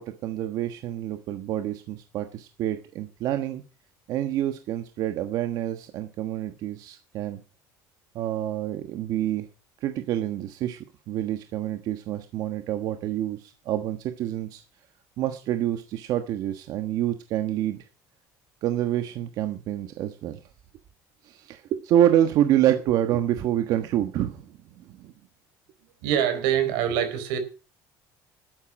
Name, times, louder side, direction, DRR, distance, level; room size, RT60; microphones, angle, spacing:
voice 1, 0.0-3.6 4.1-7.4 8.1-9.5 9.8-14.6 15.2-17.8 18.6-20.4 21.2-24.5 24.9-25.1, right 11 dB, 55° right, 7 dB, 1.3 m, -27 dB
voice 2, 26.0-27.4, right 9 dB, 90° right, 9 dB, 4.2 m, -24 dB
12.5 x 9.6 x 6.0 m, 0.34 s
cardioid pair, 155°, 8 cm